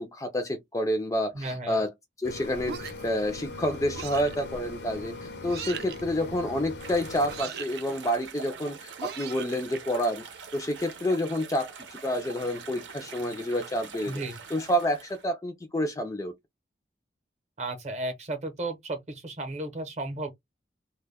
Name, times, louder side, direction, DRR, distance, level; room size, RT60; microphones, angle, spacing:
voice 1, 0.0-1.9 2.2-10.2 10.5-11.7 12.0-14.2 14.5-16.3, equal, 20° left, 0.3 m, -29 dB
voice 2, 1.3-1.8 14.1-14.4 17.6-20.3, right 2 dB, 40° right, 0.7 m, -34 dB
sound 1, 2.2-7.4, left 2 dB, 65° left, 0.6 m, -40 dB
sound 2, 2.6-3.2 3.9-4.4 5.5-6.0 7.3-7.8 9.0-9.8, right 7 dB, 60° right, 0.3 m, -39 dB
sound 3, 6.8-15.3, right 5 dB, 90° right, 0.7 m, -44 dB
2.2 x 2.1 x 3.3 m
head